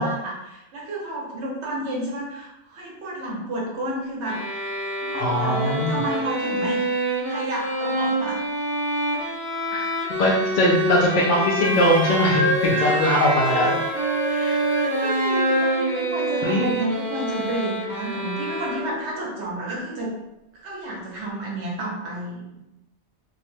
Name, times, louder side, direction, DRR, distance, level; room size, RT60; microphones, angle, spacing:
voice 1, 0.0-4.4 4.9-6.9 7.3-8.4 10.1-10.3 13.0-13.8 14.2-20.1 20.5-22.6, right 1 dB, 80° right, -3 dB, 1.1 m, -31 dB
sound 1, 4.2-19.2, right 1 dB, ahead, 0.8 m, -27 dB
voice 2, 5.1-6.0 9.7-9.8 10.2-13.8 16.4-16.7, equal, 60° left, -4 dB, 0.5 m, -21 dB
Wind instrument woodwind instrument, 11.6-15.8, left 1 dB, 45° right, 1.1 m, -26 dB
2.5 x 2.1 x 3.1 m, 0.91 s
omnidirectional pair, 1.1 m